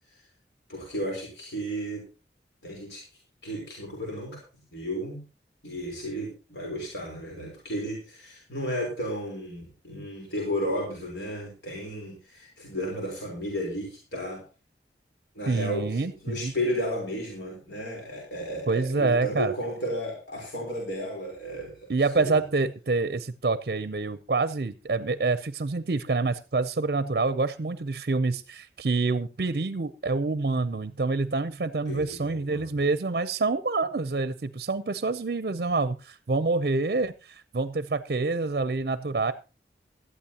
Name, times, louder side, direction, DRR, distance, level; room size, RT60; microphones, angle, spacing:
voice 1, 0.7-2.1 2.6-3.0 3.4-4.4 4.7-5.2 5.6-14.4 15.4-21.8 22.1-22.4 31.9-32.8, equal, 85° left, -1 dB, 3.8 m, -33 dB
voice 2, 15.5-16.5 18.7-19.5 21.9-39.3, right 3 dB, 55° right, 13 dB, 0.5 m, -27 dB
17.5 x 12.5 x 2.9 m, 0.31 s
head